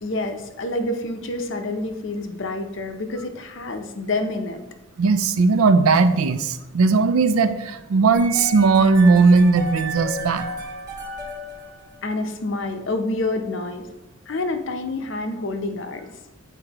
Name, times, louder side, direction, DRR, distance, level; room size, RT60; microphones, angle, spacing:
voice 1, 0.0-4.6 12.0-13.9 14.3-16.1, left 2 dB, 60° left, 7 dB, 0.6 m, -28 dB
voice 2, 5.0-10.5, right 4 dB, 85° right, 12 dB, 0.4 m, -17 dB
sound 1, 8.1-12.2, right 1 dB, 20° right, 1.1 m, -33 dB
8.1 x 4.7 x 2.9 m, 1.0 s
head